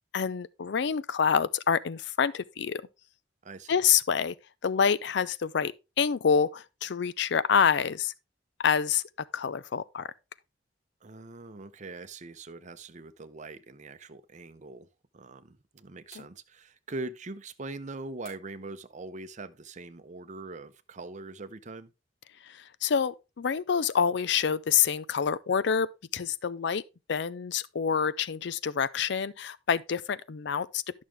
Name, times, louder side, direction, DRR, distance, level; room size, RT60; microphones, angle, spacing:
voice 1, 0.1-2.8 3.7-4.3 4.6-8.1 8.6-9.0 9.3-10.0 16.2-16.3 22.8-26.8 27.1-31.0, left 7 dB, 65° left, 0.5 m, -27 dB
voice 2, 3.4-3.8 11.0-14.9 15.1-21.9, right 2 dB, 40° right, 0.7 m, -42 dB
sound 1, 16.1-16.8 18.2-18.7, left 2 dB, 35° left, 4.2 m, -56 dB
11.0 x 6.3 x 3.4 m
head